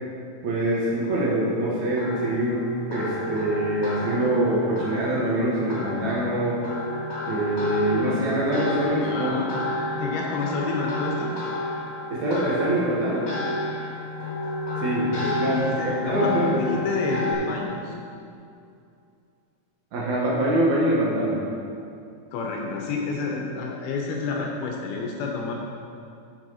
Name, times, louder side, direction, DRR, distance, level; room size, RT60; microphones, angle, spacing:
voice 1, 0.4-6.6 7.3-9.7 12.1-13.3 14.8-16.6 19.9-21.4, right 1 dB, 75° right, -5 dB, 1.6 m, -24 dB
sound 1, 0.9-17.3, left 1 dB, 45° left, 3.1 m, -31 dB
voice 2, 9.0-9.5 9.9-11.3 15.1-17.9 22.3-25.5, left 4 dB, 75° left, 0 dB, 2.4 m, -29 dB
7.8 x 7.3 x 5.6 m, 2.5 s
omnidirectional pair, 5.3 m